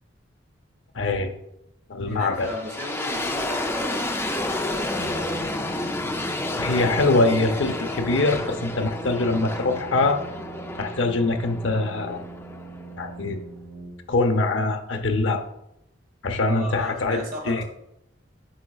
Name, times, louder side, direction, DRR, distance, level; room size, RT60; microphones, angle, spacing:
voice 1, 0.9-1.3 1.9-2.5 6.6-10.2 10.8-12.2 13.0-13.4 14.1-15.4 16.2-17.6, left 2 dB, 80° left, 6 dB, 0.7 m, -23 dB
voice 2, 2.1-4.7 16.5-17.6, equal, 50° right, 0 dB, 1.7 m, -35 dB
sound 1, 2.3-13.3, left 1 dB, 15° left, 0.4 m, -30 dB
Brass instrument, 4.9-14.4, right 2 dB, 80° right, 1.4 m, -42 dB
8.8 x 4.9 x 2.4 m, 0.82 s
head